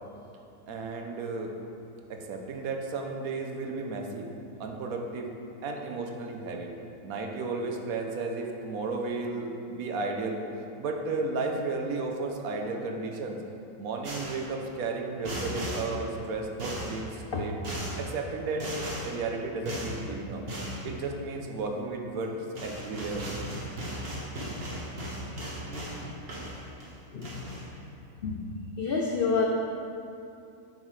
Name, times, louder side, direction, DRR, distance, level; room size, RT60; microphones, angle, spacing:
voice 1, 0.7-1.5 2.1-4.3 4.6-5.3 5.6-6.7 7.0-10.4 10.8-13.4 13.8-17.5 18.0-20.4 20.8-23.2, right 3 dB, 70° right, 2 dB, 1.2 m, -33 dB
sound 1, 14.0-14.5 15.2-15.9 16.6-17.0 17.6-18.0 18.6-19.1 19.7-20.0 20.5-20.8 22.2-22.3 22.6-26.0 26.3-26.9 27.2-27.6, right 1 dB, 45° right, 1.4 m, -36 dB
voice 2, 27.1-27.4 28.2-28.5 28.8-29.5, left 4 dB, 85° left, 1 dB, 0.5 m, -29 dB
9.0 x 5.9 x 3.2 m, 2.7 s
omnidirectional pair, 1.6 m